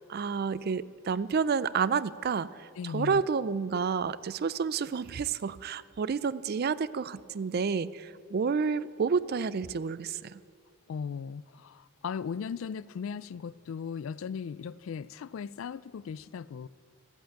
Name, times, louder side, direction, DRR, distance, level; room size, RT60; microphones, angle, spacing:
voice 1, 0.1-10.4, right 5 dB, 45° right, 17 dB, 0.4 m, -30 dB
voice 2, 2.8-3.2 10.9-16.7, left 6 dB, 70° left, 20 dB, 0.3 m, -37 dB
13.5 x 7.8 x 9.0 m, 2.2 s
head